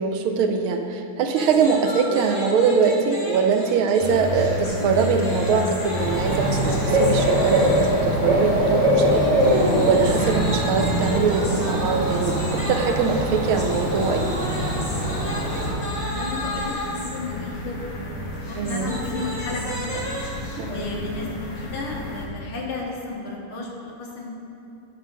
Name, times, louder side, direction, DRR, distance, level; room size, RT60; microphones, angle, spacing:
voice 1, 0.0-14.4 18.6-18.9 20.6-20.9, right 5 dB, 80° right, 5 dB, 1.4 m, -22 dB
sound 1, 1.3-8.1 9.0-17.1 18.3-20.6, equal, 25° left, 1.0 m, -33 dB
sound 2, 4.0-22.3, left 2 dB, 50° left, 1.4 m, -33 dB
Bird / Cricket, 6.0-15.7, equal, 40° right, 1.3 m, -23 dB
voice 2, 15.9-17.8 18.2-20.0 20.6-21.3 21.6-24.3, left 3 dB, 80° left, -2 dB, 2.1 m, -33 dB
10.0 x 3.7 x 6.1 m, 2.8 s
omnidirectional pair, 2.4 m